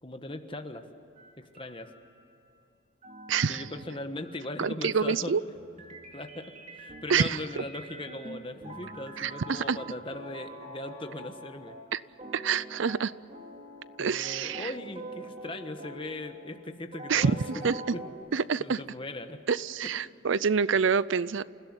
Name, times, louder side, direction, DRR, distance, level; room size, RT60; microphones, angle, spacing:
voice 1, 0.0-0.8 1.4-1.9 3.5-5.3 6.1-11.8 14.0-17.4 17.9-18.0 18.6-19.4 19.8-19.9, left 2 dB, 25° left, 7 dB, 1.4 m, -39 dB
sound 1, 1.2-2.4 3.0-18.1, right 1 dB, 35° right, 2.4 m, -45 dB
voice 2, 3.3-3.6 4.6-5.4 7.1-7.4 9.2-9.8 11.9-12.0 12.3-13.1 14.0-14.7 17.1-17.3 17.6-17.8 18.3-18.8 19.5-21.4, right 6 dB, 70° right, 18 dB, 0.5 m, -27 dB
29.0 x 16.0 x 10.0 m, 2.8 s
head